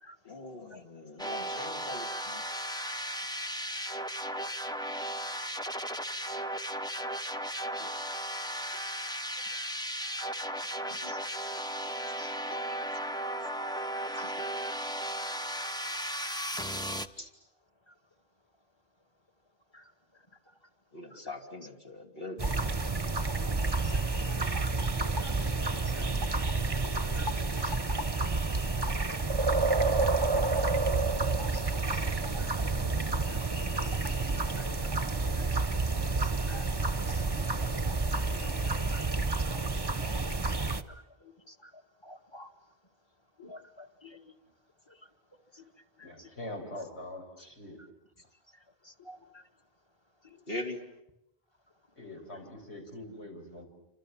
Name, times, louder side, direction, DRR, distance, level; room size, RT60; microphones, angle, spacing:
voice 1, 0.3-2.4 17.2-17.3 20.9-22.6 35.8-35.9 50.5-50.8, left 2 dB, 60° left, 2 dB, 3.3 m, -41 dB
sound 1, 1.2-17.1, equal, 5° left, 0.8 m, -35 dB
voice 2, 10.8-11.2 11.9-12.9 13.3-13.5 14.2-14.5 17.9-18.0 19.7-19.9 21.1-21.2 23.6-24.0 24.3-24.4 24.8-25.6 25.9-26.1 26.8-27.3 27.6-27.7 28.0-28.2 31.3-32.0 32.3-32.5 32.8-33.5 33.8-34.0 34.6-34.9 35.4-35.8 36.1-36.2 36.5-36.7 37.1-37.8 38.3-39.0 39.4-39.6 40.0-42.5 43.4-44.3 44.9-45.0 45.5-45.6 46.0-46.3 48.5-49.4 50.2-50.4, left 1 dB, 25° left, 5 dB, 1.9 m, -52 dB
sound 2, 22.4-40.8, right 3 dB, 25° right, 1.0 m, -29 dB
voice 3, 46.0-47.8 52.0-53.7, left 1 dB, 80° left, 1 dB, 6.3 m, -43 dB
29.0 x 25.5 x 7.5 m, 0.89 s
omnidirectional pair, 1.1 m